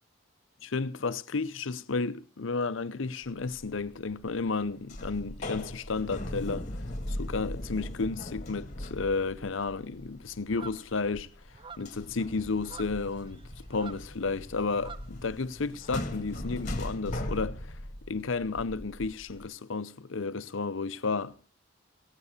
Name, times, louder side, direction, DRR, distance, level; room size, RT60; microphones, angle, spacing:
voice 1, 0.6-6.6 7.1-11.3 11.8-13.4 13.7-17.8 18.1-21.5, left 4 dB, 75° left, 0.7 m, -32 dB
sound 1, 3.5-3.8 4.1-4.6 4.9-11.5 11.8-19.5, left 1 dB, 40° left, 1.7 m, -39 dB
sound 2, 10.5-15.4 15.7-16.7, right 5 dB, 25° right, 0.6 m, -49 dB
15.5 x 9.7 x 6.6 m
head